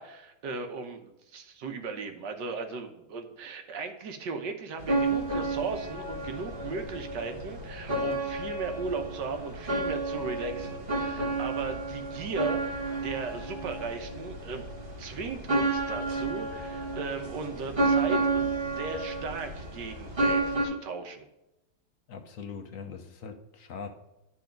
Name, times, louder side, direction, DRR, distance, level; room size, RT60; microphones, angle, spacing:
voice 1, 0.0-14.7 15.0-21.3, right 4 dB, 90° right, 5 dB, 1.6 m, -37 dB
sound 1, 4.8-20.7, right 2 dB, 35° right, 1.6 m, -31 dB
voice 2, 22.1-23.9, left 6 dB, 60° left, 6 dB, 1.1 m, -41 dB
9.8 x 4.2 x 5.1 m, 0.91 s
omnidirectional pair, 1.8 m